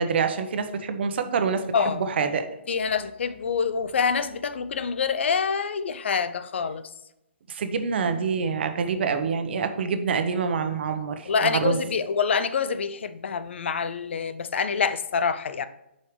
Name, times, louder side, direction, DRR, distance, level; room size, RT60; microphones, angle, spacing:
voice 1, 0.0-2.4 7.5-11.8, right 5 dB, 60° right, 1.0 m, -26 dB
voice 2, 1.7-2.0 2.7-6.9 11.3-15.7, left 6 dB, 70° left, 0.6 m, -26 dB
9.9 x 5.6 x 3.2 m
hypercardioid pair, 135°, 7 cm